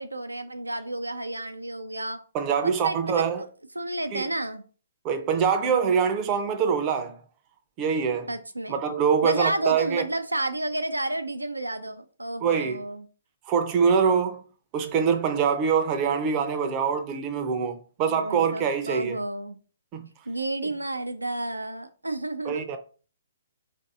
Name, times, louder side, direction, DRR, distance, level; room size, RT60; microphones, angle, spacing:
voice 1, 0.0-2.2 2.8-3.5 3.8-4.6 8.3-8.8 9.2-13.0 18.0-19.6 20.3-22.7, right 1 dB, 90° right, 0.3 m, -31 dB
voice 2, 2.3-3.4 4.1-4.2 5.0-7.2 7.8-8.3 8.7-10.0 12.4-12.8 13.5-14.4 14.7-19.2 19.9-20.1 22.4-22.8, right 6 dB, 30° right, 0.5 m, -24 dB
3.8 x 2.5 x 2.4 m
figure-of-eight pair, 125°, 0 cm